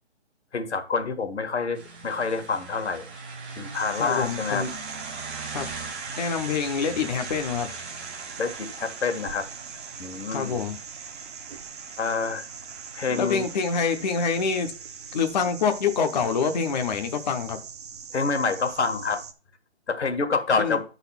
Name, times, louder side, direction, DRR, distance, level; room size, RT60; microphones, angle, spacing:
voice 1, 0.5-3.1 3.6-4.7 8.4-9.4 10.0-10.6 12.0-12.4 12.9-13.4 18.1-19.2 19.9-20.8, left 4 dB, 80° left, 1.6 m, -27 dB
sound 1, 1.7-15.1, right 4 dB, 10° right, 0.5 m, -41 dB
sound 2, 3.7-19.3, right 7 dB, 35° right, 0.8 m, -42 dB
voice 2, 4.0-4.7 5.5-5.7 6.2-7.7 10.3-10.8 13.2-14.7 15.1-17.6 20.6-20.8, left 5 dB, 40° left, 0.8 m, -26 dB
9.7 x 4.1 x 5.6 m
hypercardioid pair, 155°, 33 cm